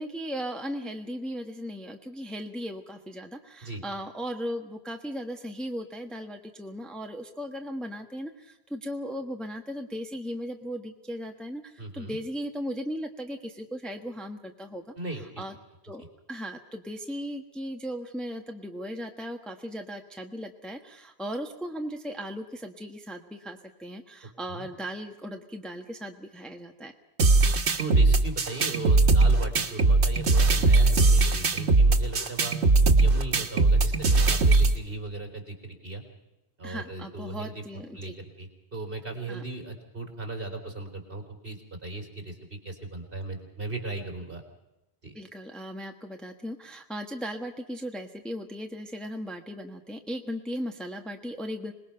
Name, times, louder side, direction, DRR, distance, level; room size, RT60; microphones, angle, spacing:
voice 1, 0.0-14.8 15.2-15.5 15.8-16.0 16.3-26.9 36.6-38.1 39.3-39.4 45.1-51.7, equal, ahead, 3 dB, 1.3 m, -37 dB
voice 2, 11.8-12.2 15.0-15.4 24.5-24.7 27.8-32.6 33.0-36.0 36.6-44.4 45.0-45.2, right 2 dB, 55° right, 4 dB, 3.9 m, -37 dB
sound 1, 27.2-34.8, right 3 dB, 80° right, 1.7 m, -20 dB
26.5 x 20.0 x 5.8 m, 0.97 s
omnidirectional pair, 1.1 m